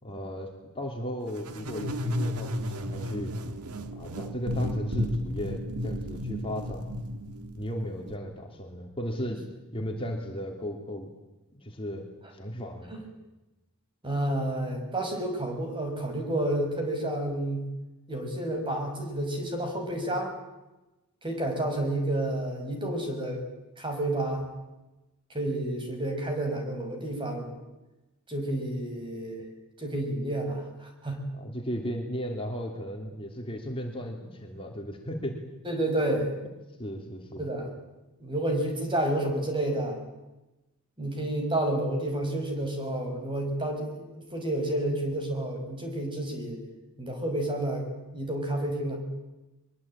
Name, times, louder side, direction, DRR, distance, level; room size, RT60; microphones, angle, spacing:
voice 1, 0.0-3.3 3.9-6.9 7.5-9.4 9.7-11.1 11.5-12.9 31.4-35.4 36.8-37.5, equal, 25° left, 1 dB, 3.0 m, -35 dB
sound 1, 1.4-8.2, equal, 90° right, 1.8 m, -33 dB
voice 2, 14.0-17.7 18.1-20.4 21.2-23.4 23.8-24.5 25.3-27.6 28.3-29.4 29.8-31.2 35.6-36.3 37.4-37.7 38.2-40.0 41.0-46.6 47.0-47.9 48.1-49.0, right 1 dB, 20° right, 3 dB, 5.8 m, -30 dB
23.5 x 22.5 x 8.9 m, 1.0 s
head